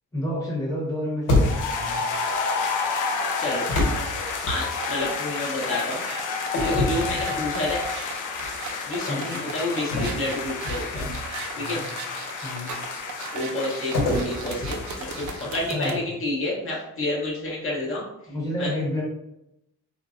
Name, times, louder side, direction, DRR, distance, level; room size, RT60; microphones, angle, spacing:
voice 1, 0.1-2.0 6.7-7.2 9.1-9.5 11.5-12.0 12.4-12.7 15.4-16.1 16.7-16.8 18.3-19.0, left 1 dB, 10° left, -5 dB, 0.9 m, -31 dB
sound 1, 1.3-1.9 3.7-5.0 6.5-7.9 8.3-8.6 9.9-11.4 13.9-15.6, left 2 dB, 85° left, 1.1 m, -27 dB
sound 2, 1.3-15.9, left 4 dB, 70° left, 0.6 m, -31 dB
sound 3, 3.3-16.0, right 5 dB, 65° right, 0.5 m, -38 dB
voice 2, 4.5-6.0 6.6-7.8 8.9-11.1 11.5-11.8 13.3-14.0 14.2-18.0 18.6-18.7, left 2 dB, 40° left, -4 dB, 0.9 m, -29 dB
3.9 x 2.0 x 2.4 m, 0.84 s
cardioid pair, 115°, 32 cm